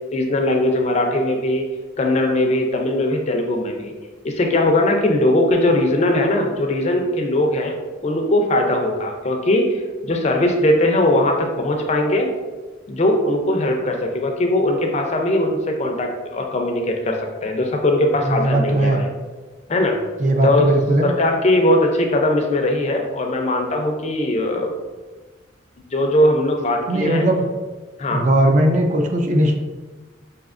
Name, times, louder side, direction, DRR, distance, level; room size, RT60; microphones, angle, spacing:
voice 1, 0.1-1.6 2.0-3.9 4.2-7.8 8.0-12.3 12.9-19.1 19.7-20.0 20.4-20.7 21.0-24.7 25.9-27.3 28.0-28.3, left 1 dB, 35° left, 2 dB, 0.4 m, -20 dB
voice 2, 18.2-19.0 20.2-21.1 26.9-27.4 28.1-29.5, right 1 dB, 40° right, 3 dB, 0.4 m, -18 dB
5.0 x 2.8 x 2.4 m, 1.3 s
head